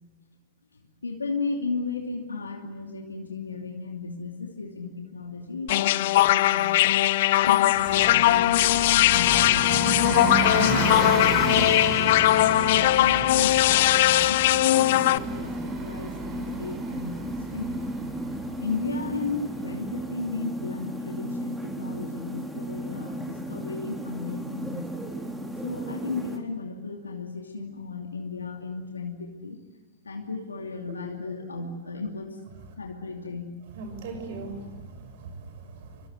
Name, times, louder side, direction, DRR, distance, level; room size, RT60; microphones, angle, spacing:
voice 1, 0.7-6.9 7.5-12.2 12.6-17.9 18.6-24.9 25.6-29.6 30.0-32.4 32.8-33.4, left 4 dB, 90° left, 2 dB, 2.7 m, -35 dB
sound 1, 5.7-15.2, left 15 dB, 60° left, 0.7 m, -20 dB
Bus, 7.7-20.0, right 3 dB, 30° right, 6.7 m, -33 dB
sound 2, 14.7-26.4, right 1 dB, 5° right, 4.1 m, -35 dB
voice 2, 33.8-36.1, right 3 dB, 60° right, 7 dB, 6.8 m, -39 dB
25.0 x 24.5 x 8.0 m, 1.3 s
hypercardioid pair, 105°, 0 cm